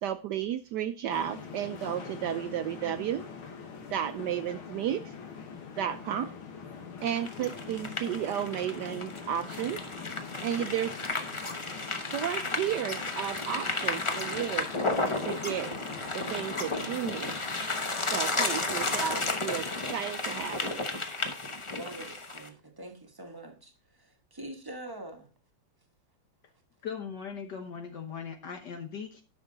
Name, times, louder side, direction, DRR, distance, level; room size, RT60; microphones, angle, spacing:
voice 1, 0.0-3.2 3.9-5.1 5.8-6.3 7.0-9.8 10.4-11.0 12.1-14.7 15.2-15.7 16.1-17.3 18.1-20.7, right 10 dB, 75° right, 11 dB, 1.0 m, -33 dB
sound 1, 1.1-19.7, left 6 dB, 85° left, 2.3 m, -44 dB
sound 2, 7.0-22.5, left 2 dB, 35° left, 0.4 m, -33 dB
voice 2, 21.7-25.3, right 1 dB, 15° right, 4 dB, 0.9 m, -44 dB
voice 3, 26.8-29.2, left 6 dB, 60° left, 4 dB, 1.5 m, -39 dB
10.5 x 6.4 x 3.8 m, 0.34 s
omnidirectional pair, 2.2 m